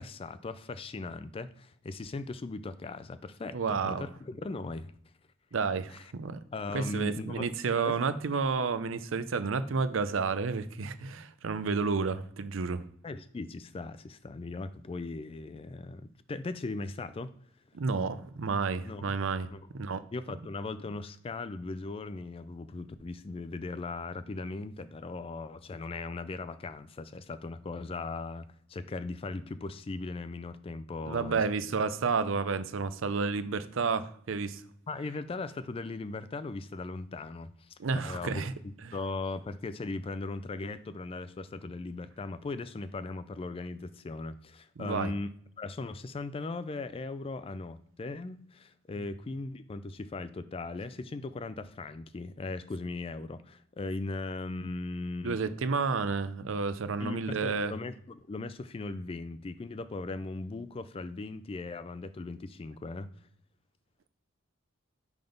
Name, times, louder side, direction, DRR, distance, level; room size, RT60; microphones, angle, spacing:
voice 1, 0.0-4.9 5.9-6.1 6.5-7.5 7.8-8.0 13.0-17.3 18.8-19.1 19.5-19.6 20.1-31.4 34.9-37.7 38.0-45.3 45.6-55.4 57.0-63.1, left 3 dB, 30° left, 0.3 m, -38 dB
voice 2, 3.5-4.1 5.5-6.4 6.7-12.9 17.7-20.0 31.1-34.6 37.8-38.5 44.8-45.1 55.2-57.7, right 4 dB, 70° right, 0.5 m, -31 dB
5.8 x 3.5 x 5.1 m
head